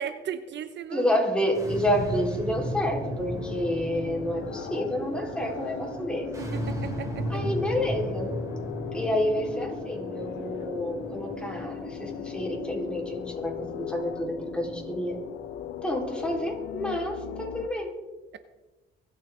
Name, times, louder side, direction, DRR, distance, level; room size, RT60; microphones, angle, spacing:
voice 1, 0.0-1.1 6.4-7.4, right 8 dB, 65° right, 11 dB, 0.8 m, -36 dB
voice 2, 0.9-6.3 7.3-8.3 8.9-15.2 15.8-17.9, left 1 dB, 5° left, -1 dB, 4.2 m, -29 dB
sound 1, 1.4-16.7, right 1 dB, 15° right, 3.4 m, -37 dB
sound 2, 3.3-17.7, left 12 dB, 85° left, 0.7 m, -39 dB
23.5 x 8.9 x 3.8 m, 1.1 s
cardioid pair, 90°, 20 cm